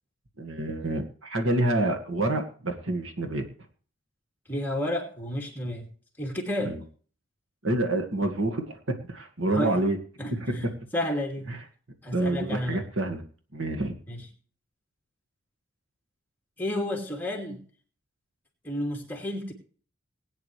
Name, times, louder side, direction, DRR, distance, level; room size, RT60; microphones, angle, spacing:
voice 1, 0.4-3.4 6.6-6.8 7.6-10.0 10.3-10.7 11.5-11.6 12.1-13.2 13.5-13.9, right 1 dB, 65° right, 5 dB, 2.0 m, -28 dB
voice 2, 4.5-5.9 6.2-6.8 9.5-9.8 10.2-10.7 10.9-11.5 12.0-12.8 14.1-14.3 16.6-17.6 18.6-19.5, left 1 dB, 10° left, 0 dB, 2.7 m, -31 dB
20.0 x 9.5 x 3.3 m, 0.43 s
head